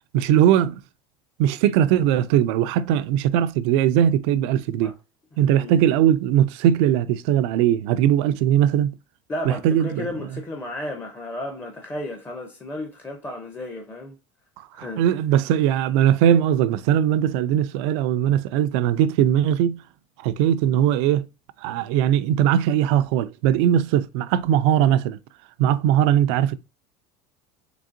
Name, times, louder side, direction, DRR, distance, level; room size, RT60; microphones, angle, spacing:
voice 1, 0.1-0.8 1.4-4.9 5.4-8.9 9.5-10.1 14.6-19.8 20.2-21.3 21.6-25.2 25.6-26.6, right 10 dB, 75° right, 0.4 m, -20 dB
voice 2, 9.3-14.2 14.7-15.0, left 1 dB, 15° left, 0.5 m, -33 dB
3.8 x 3.4 x 2.5 m
cardioid pair, 150°, 15 cm